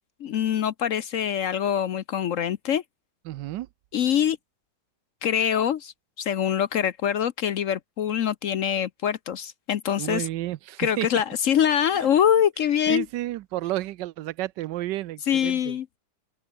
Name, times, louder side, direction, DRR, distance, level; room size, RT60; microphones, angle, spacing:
voice 1, 0.2-2.8 3.9-4.4 5.2-10.3 10.8-13.1 15.3-15.9, left 9 dB, 60° left, 0.9 m, -24 dB
voice 2, 3.3-3.7 10.0-11.1 12.9-15.8, right 15 dB, 85° right, 1.3 m, -31 dB
open air
omnidirectional pair, 1.8 m